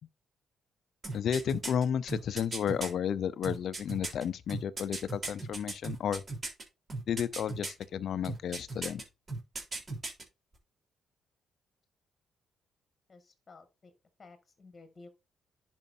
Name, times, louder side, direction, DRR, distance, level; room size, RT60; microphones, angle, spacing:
sound 1, 1.0-2.9 3.4-6.6 6.9-7.8 8.2-9.0 9.3-10.2 10.5-10.6, right 3 dB, 35° right, 3.7 m, -37 dB
voice 1, 1.1-6.2 7.1-9.0, left 8 dB, 65° left, 0.6 m, -32 dB
voice 2, 13.1-13.9 14.2-15.1, left 3 dB, 30° left, 1.8 m, -54 dB
10.5 x 5.2 x 2.7 m
cardioid pair, 90°, 0 cm